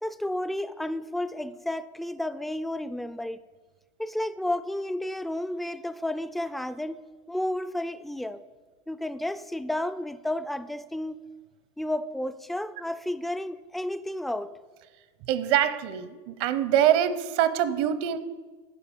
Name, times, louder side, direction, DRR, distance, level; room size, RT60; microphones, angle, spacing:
voice 1, 0.0-3.4 4.0-7.0 7.3-8.4 8.9-11.2 11.8-14.6, left 1 dB, ahead, 0.3 m, -32 dB
voice 2, 15.3-18.2, right 10 dB, 65° right, 0.8 m, -24 dB
10.0 x 5.6 x 7.3 m
supercardioid pair, 140°, 14 cm